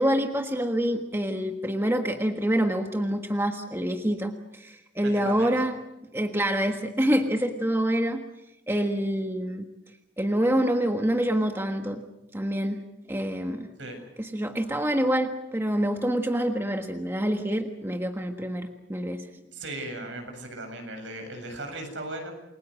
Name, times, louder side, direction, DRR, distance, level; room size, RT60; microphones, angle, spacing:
voice 1, 0.0-5.8 6.1-8.2 8.7-9.6 10.2-12.0 12.3-12.8 13.1-13.7 14.2-19.2, equal, 10° right, 4 dB, 1.4 m, -26 dB
voice 2, 5.0-5.7 13.8-14.0 19.5-22.3, right 2 dB, 70° right, 4 dB, 7.6 m, -37 dB
29.0 x 22.5 x 6.5 m, 0.91 s
head